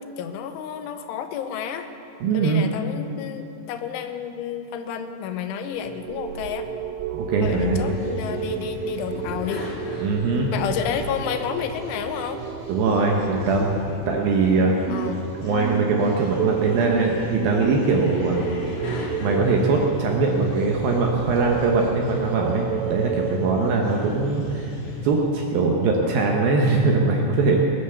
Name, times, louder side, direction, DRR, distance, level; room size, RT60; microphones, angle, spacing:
voice 1, 0.0-1.9 2.3-6.7 7.4-9.7 10.5-12.4 14.9-15.2, left 8 dB, 85° left, 8 dB, 3.3 m, -30 dB
voice 2, 2.2-2.6 7.1-7.9 10.0-10.5 12.7-15.0 15.4-18.4 19.2-27.7, right 3 dB, 70° right, 0 dB, 2.3 m, -22 dB
sound 1, 5.7-23.8, right 8 dB, 90° right, 3.3 m, -31 dB
sound 2, 7.4-25.1, left 2 dB, 55° left, 3.2 m, -38 dB
20.0 x 9.3 x 7.0 m, 2.8 s
omnidirectional pair, 5.4 m